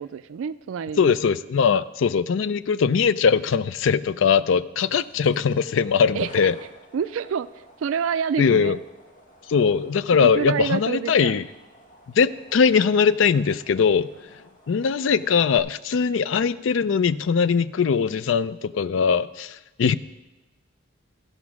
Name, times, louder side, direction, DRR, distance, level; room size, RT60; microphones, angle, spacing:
voice 1, 0.0-1.1 6.1-6.5 6.9-8.7 10.1-11.4, right 7 dB, 75° right, 15 dB, 0.3 m, -28 dB
voice 2, 1.0-6.5 8.4-8.8 9.5-11.4 12.2-14.1 14.7-19.9, left 6 dB, 65° left, 15 dB, 0.4 m, -21 dB
sound 1, 4.8-15.6, equal, 40° left, 1.6 m, -52 dB
13.5 x 5.2 x 6.0 m, 1.1 s
head